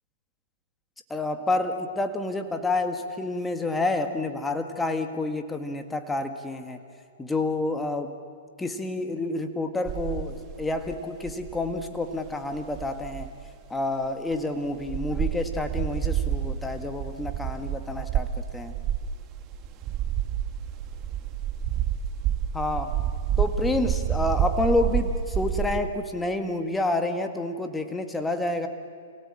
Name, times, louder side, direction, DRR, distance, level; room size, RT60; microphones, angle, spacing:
voice 1, 1.1-6.8 7.2-8.1 8.6-13.3 13.7-18.7 22.5-23.0 23.4-28.7, left 2 dB, 10° left, 6 dB, 1.9 m, -29 dB
sound 1, 9.9-13.5 14.0-14.1 14.3-14.4 14.8-25.8, right 10 dB, 30° right, 1.6 m, -29 dB
28.5 x 17.5 x 8.8 m, 2.1 s
hypercardioid pair, 125°, 0 cm